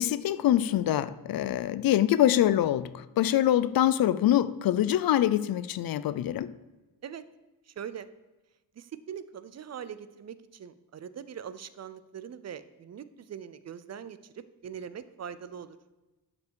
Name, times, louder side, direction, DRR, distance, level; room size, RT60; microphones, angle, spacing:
voice 1, 0.0-6.5, left 12 dB, 70° left, 0.5 m, -25 dB
voice 2, 7.6-8.1 8.7-15.8, right 8 dB, 45° right, 0.5 m, -42 dB
11.5 x 5.3 x 4.7 m
wide cardioid pair, 155°, 37 cm